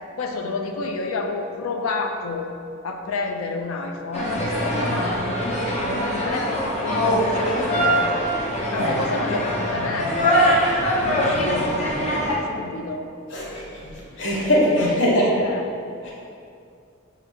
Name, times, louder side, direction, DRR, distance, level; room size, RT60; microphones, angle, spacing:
voice 1, 0.2-2.5 2.8-8.2 8.7-10.5 10.9-12.1 12.5-13.1 14.7-15.6, left 3 dB, 90° left, 4 dB, 0.4 m, -30 dB
sound 1, 4.1-12.4, equal, 35° left, 0.6 m, -23 dB
voice 2, 13.3-13.6 14.2-15.2 16.0-16.1, equal, 60° left, -5 dB, 0.9 m, -21 dB
5.4 x 2.5 x 3.4 m, 2.4 s
head